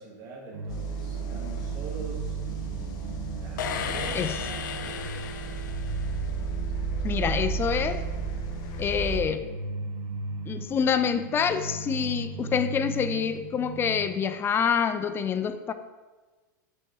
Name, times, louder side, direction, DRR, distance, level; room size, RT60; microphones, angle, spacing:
voice 1, 0.0-4.3 4.6-5.7, right 3 dB, 35° right, 1.6 m, -44 dB
sound 1, 0.5-14.1, right 2 dB, 85° right, 1.0 m, -38 dB
sound 2, 0.7-9.2, right 5 dB, 40° left, 1.1 m, -33 dB
sound 3, 3.6-6.4, left 6 dB, 75° left, 0.7 m, -35 dB
voice 2, 7.0-8.0 8.8-9.4 10.5-15.7, left 7 dB, 20° left, 0.4 m, -26 dB
7.8 x 6.3 x 3.1 m
supercardioid pair, 125°, 11 cm